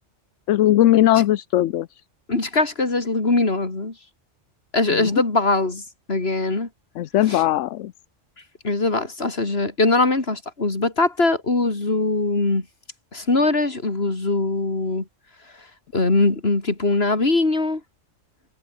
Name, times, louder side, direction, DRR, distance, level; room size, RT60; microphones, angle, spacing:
voice 1, 0.5-1.9 4.9-5.1 7.0-7.9, left 13 dB, 75° left, 1.0 m, -18 dB
voice 2, 2.3-3.9 4.7-5.8 6.1-6.7 7.3-7.4 8.6-12.7 13.1-15.0 15.9-17.8, left 3 dB, 55° left, 3.6 m, -21 dB
omnidirectional pair, 1.3 m